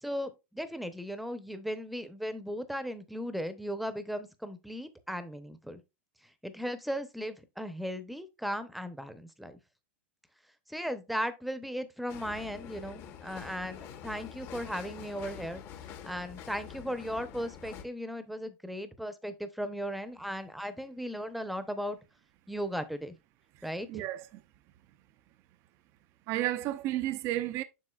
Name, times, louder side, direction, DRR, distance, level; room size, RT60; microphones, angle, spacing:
voice 1, 0.0-5.8 6.4-9.6 10.7-15.6 16.0-22.0 22.5-23.2 23.6-24.0, equal, ahead, 0.8 m, -37 dB
sound 1, 12.1-17.8, left 8 dB, 40° left, 1.0 m, -46 dB
voice 2, 23.6-24.3 26.3-27.6, right 14 dB, 40° right, 0.5 m, -32 dB
7.6 x 6.0 x 2.4 m
supercardioid pair, 140°, 7 cm